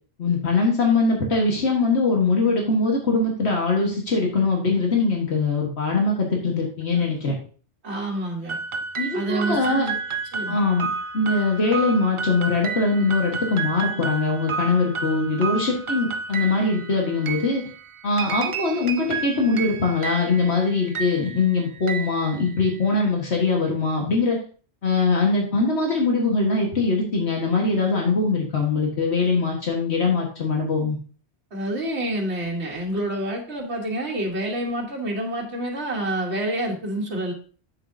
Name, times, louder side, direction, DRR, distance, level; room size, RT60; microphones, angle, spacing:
voice 1, 0.2-7.4 9.0-9.9 10.5-10.9 11.1-17.6 18.0-24.4 24.8-31.0, left 3 dB, 75° left, 0 dB, 1.8 m, -22 dB
voice 2, 7.8-8.6 9.1-10.0 10.3-10.6 31.5-37.3, right 1 dB, 75° right, -1 dB, 1.7 m, -28 dB
sound 1, 8.5-22.9, right 5 dB, 40° right, 0.5 m, -31 dB
7.8 x 7.3 x 2.7 m, 0.40 s
omnidirectional pair, 1.1 m